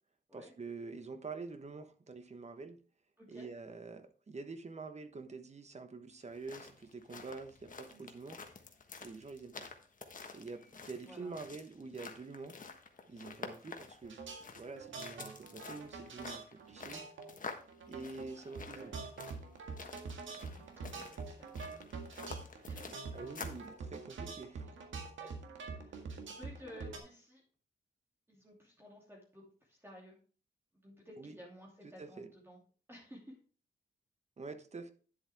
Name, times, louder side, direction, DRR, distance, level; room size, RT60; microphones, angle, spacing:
voice 1, 0.3-2.8 3.3-8.4 9.0-9.7 10.3-12.6 13.1-17.0 17.9-19.0 23.1-24.7 31.2-31.4 32.0-32.3 34.4-34.9, right 4 dB, 35° right, 9 dB, 1.2 m, -47 dB
voice 2, 3.2-3.5 7.9-8.2 11.0-11.3 18.4-19.0 20.5-22.2 22.6-23.0 25.2-25.3 25.6-26.1 26.4-27.4 28.3-30.2 30.8-32.6 32.9-33.4, left 1 dB, 10° right, -3 dB, 2.8 m, -55 dB
sound 1, 6.2-23.7, left 4 dB, 45° left, 1.4 m, -49 dB
sound 2, 14.0-27.0, right 4 dB, 90° right, 1.9 m, -45 dB
10.5 x 7.7 x 3.6 m, 0.39 s
wide cardioid pair, 115°, 19 cm